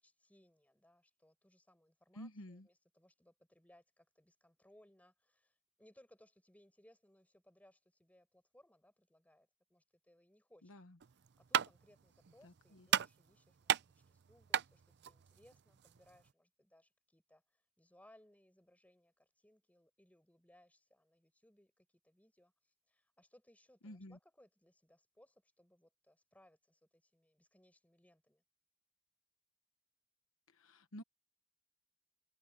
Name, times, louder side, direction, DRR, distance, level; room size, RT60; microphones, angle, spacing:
voice 1, 0.0-10.8 11.4-28.4, left 1 dB, 5° left, 7.2 m, -68 dB
voice 2, 2.1-2.7 10.6-11.0 12.4-12.9 23.8-24.2 30.5-31.0, left 1 dB, 60° left, 1.2 m, -52 dB
sound 1, 11.0-16.3, right 9 dB, 50° right, 0.5 m, -37 dB
head